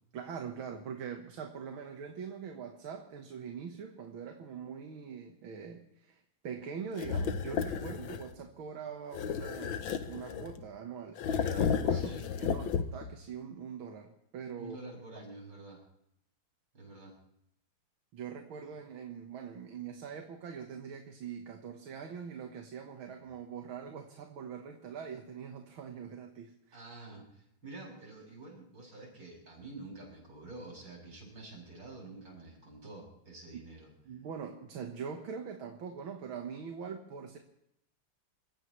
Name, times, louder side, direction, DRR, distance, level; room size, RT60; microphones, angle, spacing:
voice 1, 0.1-14.8 18.1-26.8 34.1-37.4, right 6 dB, 75° right, 4 dB, 2.2 m, -43 dB
sound 1, 7.0-8.3 9.1-10.7 11.2-13.1, left 7 dB, 70° left, 1.6 m, -33 dB
voice 2, 11.9-12.3 14.6-15.8 16.7-17.1 26.7-33.9, right 2 dB, 55° right, -2 dB, 7.6 m, -48 dB
28.5 x 15.5 x 3.2 m, 0.78 s
omnidirectional pair, 2.3 m